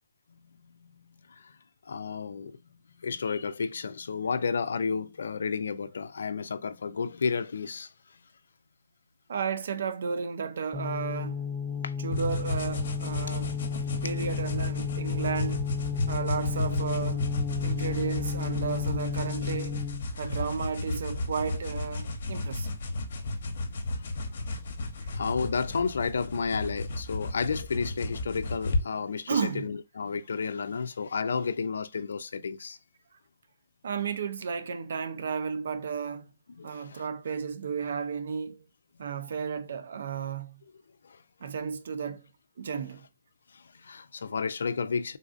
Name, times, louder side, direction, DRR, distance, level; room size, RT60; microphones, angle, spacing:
voice 1, 0.3-1.5 1.9-7.9 11.8-11.9 13.2-13.4 20.1-20.4 23.2-32.8 36.6-37.0 41.0-41.2 43.5-45.2, left 5 dB, 80° left, 0.4 m, -32 dB
voice 2, 9.3-11.4 12.0-13.5 14.0-15.7 16.1-17.3 17.6-19.8 20.2-22.7 25.0-25.1 29.3-29.7 33.8-36.3 36.6-38.6 39.0-40.6 41.4-42.2 42.6-43.1, right 6 dB, 65° right, 0.5 m, -33 dB
sound 1, 10.7-20.1, left 7 dB, 5° right, 0.6 m, -33 dB
sound 2, 12.1-28.8, left 2 dB, 55° left, 0.9 m, -33 dB
3.8 x 2.5 x 2.4 m
hypercardioid pair, 160°, 0 cm